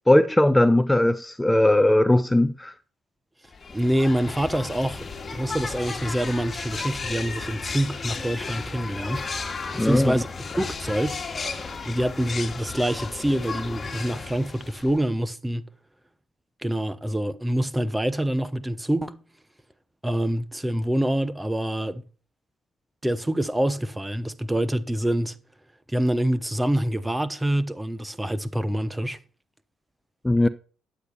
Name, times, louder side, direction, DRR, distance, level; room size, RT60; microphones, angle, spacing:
voice 1, 0.1-2.7 9.8-10.2 30.2-30.5, left 1 dB, 10° left, 0.6 m, -19 dB
sound 1, 3.5-15.1, left 4 dB, 35° left, 1.9 m, -34 dB
voice 2, 3.7-5.0 5.3-9.2 9.8-10.3 10.6-11.2 11.9-15.7 16.6-19.2 20.0-22.0 23.0-25.4 25.9-29.2, right 1 dB, 10° right, 1.0 m, -26 dB
10.5 x 8.2 x 4.2 m
supercardioid pair, 65°, 0 cm